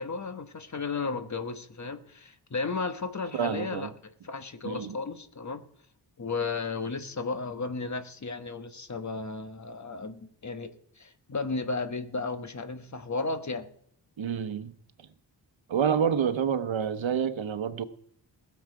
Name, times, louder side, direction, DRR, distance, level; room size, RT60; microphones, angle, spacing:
voice 1, 0.0-3.9 4.2-5.6 6.2-13.7, left 4 dB, 40° left, 1.2 m, -34 dB
voice 2, 3.3-3.9 4.6-4.9 14.2-14.7 15.7-17.8, right 7 dB, 80° right, 1.1 m, -28 dB
20.5 x 7.3 x 4.9 m
wide cardioid pair, 130°, 46 cm